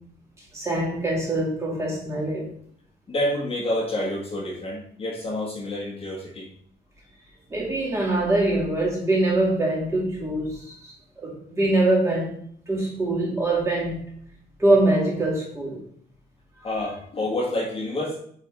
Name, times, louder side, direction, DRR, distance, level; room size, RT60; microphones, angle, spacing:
voice 1, 0.5-2.5 7.5-12.3 12.7-14.0 14.6-15.8, right 2 dB, 15° right, -5 dB, 2.2 m, -23 dB
voice 2, 3.1-6.5 16.6-18.2, left 1 dB, 35° left, -4 dB, 1.6 m, -28 dB
8.7 x 3.6 x 3.5 m, 0.62 s
wide cardioid pair, 180°, 18 cm